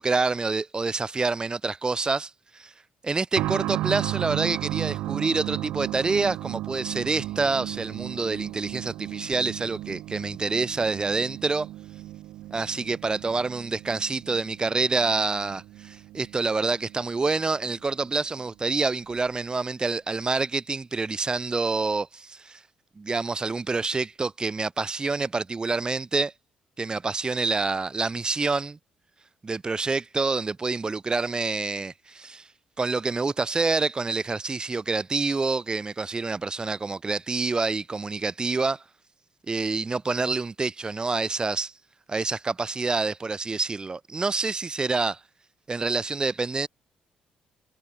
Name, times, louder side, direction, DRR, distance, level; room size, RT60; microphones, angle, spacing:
voice 1, 0.0-2.7 3.0-11.7 12.5-22.6 23.0-26.3 26.8-28.8 29.4-32.5 32.8-38.8 39.5-41.7 42.1-45.2 45.7-46.7, right 3 dB, 25° right, 0.6 m, -27 dB
sound 1, 3.3-17.8 18.0-18.1 19.1-19.2, right 15 dB, 80° right, 1.6 m, -35 dB
supercardioid pair, 60°, 3 cm